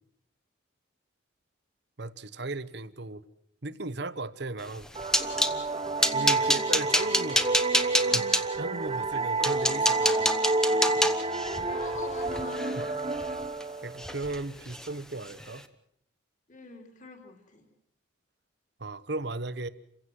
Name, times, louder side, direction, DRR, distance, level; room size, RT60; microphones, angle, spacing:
voice 1, 2.0-3.2 3.6-4.9 6.1-7.4 8.0-8.2 8.5-10.4 13.8-15.6 18.8-19.7, right 2 dB, 55° right, 1.0 m, -36 dB
sound 1, 4.7-5.6 6.0-8.4 9.0-9.1 9.4-13.6 14.0-14.4 14.7-14.9 15.3-15.4, equal, 5° left, 0.9 m, -27 dB
sound 2, 5.0-14.4, right 2 dB, 25° right, 1.3 m, -29 dB
voice 2, 11.6-12.9 16.5-17.7, left 3 dB, 40° left, 3.3 m, -44 dB
28.5 x 16.0 x 7.7 m
head